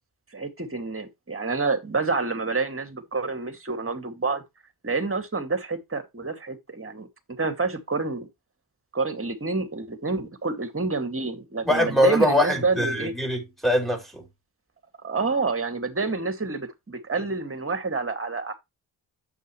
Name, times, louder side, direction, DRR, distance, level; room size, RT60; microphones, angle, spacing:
voice 1, 0.3-4.4 4.8-7.1 7.4-8.3 8.9-13.1 15.0-18.5, right 3 dB, 30° right, 2.4 m, -28 dB
voice 2, 11.6-14.2, equal, ahead, 5.3 m, -22 dB
9.2 x 7.5 x 3.2 m
supercardioid pair, 50°, 47 cm